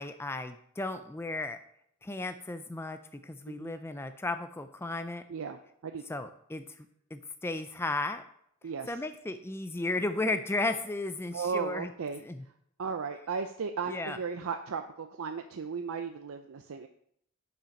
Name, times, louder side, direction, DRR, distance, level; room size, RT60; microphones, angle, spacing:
voice 1, 0.0-1.6 2.0-5.2 6.1-6.6 7.1-8.2 8.9-11.9 12.2-12.4 13.9-14.2, left 2 dB, 10° left, 9 dB, 0.4 m, -34 dB
voice 2, 3.5-3.8 5.3-6.0 8.6-8.9 11.3-12.2 12.8-16.9, right 5 dB, 75° right, 7 dB, 0.5 m, -35 dB
7.3 x 5.6 x 5.2 m, 0.69 s
head